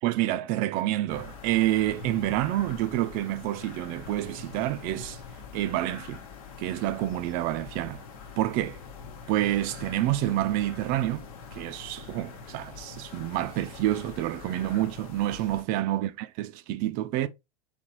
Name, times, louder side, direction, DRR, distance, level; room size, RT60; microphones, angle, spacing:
voice 1, 0.0-5.2 5.5-6.2 6.6-8.0 8.4-8.8 9.3-17.3, right 14 dB, 50° right, 0.5 m, -28 dB
sound 1, 1.1-15.6, left 5 dB, 65° left, 1.0 m, -44 dB
4.1 x 3.0 x 3.0 m
hypercardioid pair, 90°, 20 cm